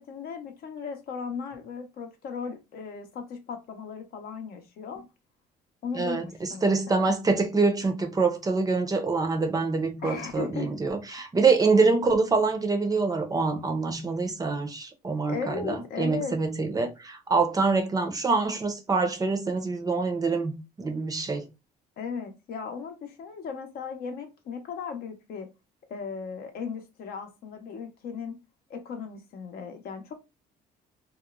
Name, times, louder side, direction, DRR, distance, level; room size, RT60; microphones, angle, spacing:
voice 1, 0.0-5.0 5.8-7.1 10.0-10.7 15.3-16.3 22.0-25.5 25.9-28.4 28.7-30.1, left 6 dB, 65° left, 0.7 m, -37 dB
voice 2, 5.9-21.5, right 4 dB, 20° right, 0.5 m, -25 dB
2.8 x 2.0 x 2.2 m
cardioid pair, 110°, 17 cm